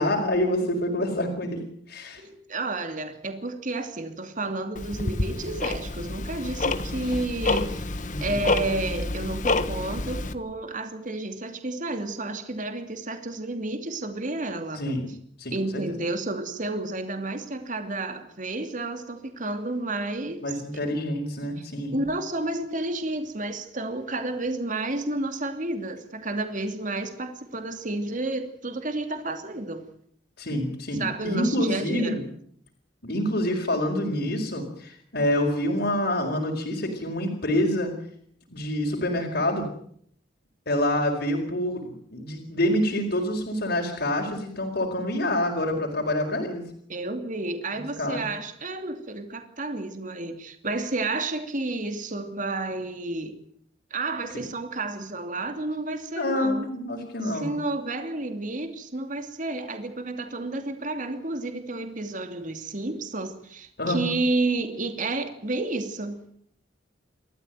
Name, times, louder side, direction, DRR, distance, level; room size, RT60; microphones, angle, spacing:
voice 1, 0.0-1.6 1.9-2.2 8.1-8.4 14.7-15.1 15.4-15.8 20.4-22.0 30.4-32.2 33.0-37.9 38.5-39.7 40.7-46.6 47.7-48.2 54.3-54.4 56.1-57.5 63.8-64.0, left 1 dB, 60° left, 1 dB, 4.7 m, -27 dB
voice 2, 2.2-7.9 8.2-14.8 15.5-20.6 21.6-21.7 21.9-29.8 31.0-32.2 46.9-53.3 53.9-56.7 57.2-66.2, right 2 dB, 45° right, 7 dB, 2.8 m, -31 dB
Tick-tock, 4.8-10.3, left 2 dB, 45° left, 1.5 m, -28 dB
29.0 x 14.0 x 9.2 m, 0.65 s
head